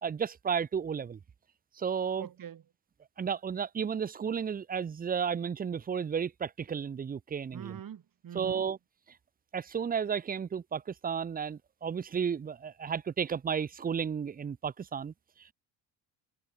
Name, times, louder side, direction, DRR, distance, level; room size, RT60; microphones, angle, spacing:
voice 1, 0.0-1.2 1.8-2.3 3.2-7.8 8.3-8.8 9.5-15.1, right 7 dB, 20° right, 0.5 m, -33 dB
voice 2, 2.2-2.7 7.5-8.7, right 9 dB, 50° right, 7.6 m, -44 dB
cardioid pair, 150°, 41 cm